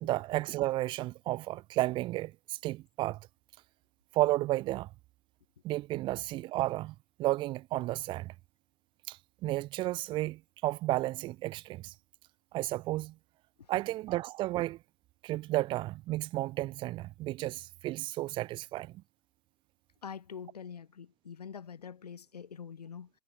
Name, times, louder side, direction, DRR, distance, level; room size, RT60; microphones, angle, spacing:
voice 1, 0.0-3.2 4.1-4.9 5.6-8.3 9.1-11.9 12.5-13.1 13.7-14.8 15.2-19.0, right 17 dB, 25° right, 0.4 m, -32 dB
voice 2, 20.0-23.1, left 7 dB, 75° left, 0.9 m, -45 dB
figure-of-eight pair, 100°, 20 cm